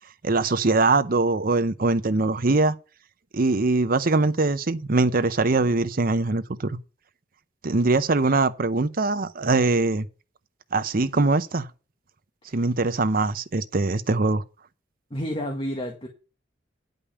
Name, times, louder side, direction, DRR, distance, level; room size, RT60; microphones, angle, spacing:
voice 1, 0.2-2.7 3.3-6.8 7.6-10.1 10.7-11.7 12.5-14.4, right 3 dB, 50° right, 0.8 m, -22 dB
voice 2, 15.1-16.1, equal, 30° left, 1.7 m, -30 dB
9.9 x 5.4 x 6.9 m
head